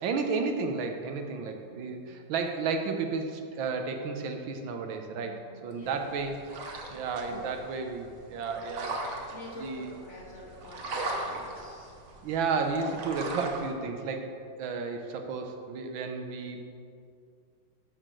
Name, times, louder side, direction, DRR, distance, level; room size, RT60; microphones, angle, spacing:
voice 1, 0.0-6.4 6.9-9.1 9.6-9.9 12.2-16.6, right 4 dB, 85° right, 5 dB, 1.6 m, -32 dB
voice 2, 1.4-2.1 5.2-6.2 7.3-7.7 9.3-12.0 15.3-15.4 16.4-16.6, left 1 dB, 50° left, -1 dB, 0.9 m, -48 dB
sound 1, 5.8-13.7, right 2 dB, 50° right, 1.2 m, -39 dB
12.0 x 6.4 x 3.8 m, 2.3 s
omnidirectional pair, 2.1 m